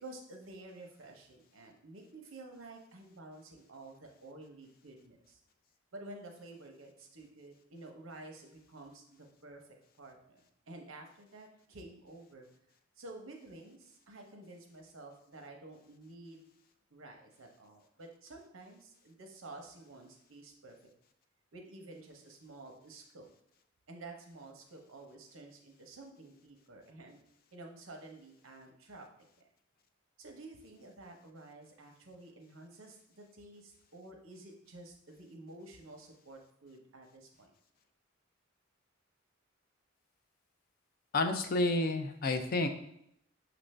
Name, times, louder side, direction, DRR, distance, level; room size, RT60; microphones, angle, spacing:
voice 1, 0.0-5.4 5.9-12.5 13.0-16.5 16.9-20.7 21.5-23.3 23.9-27.2 27.5-29.1 29.4-29.5 30.2-37.5, right 2 dB, 75° right, 3 dB, 0.8 m, -51 dB
voice 2, 41.1-42.7, left 2 dB, 45° left, 7 dB, 0.4 m, -30 dB
5.9 x 2.6 x 3.2 m, 0.74 s
head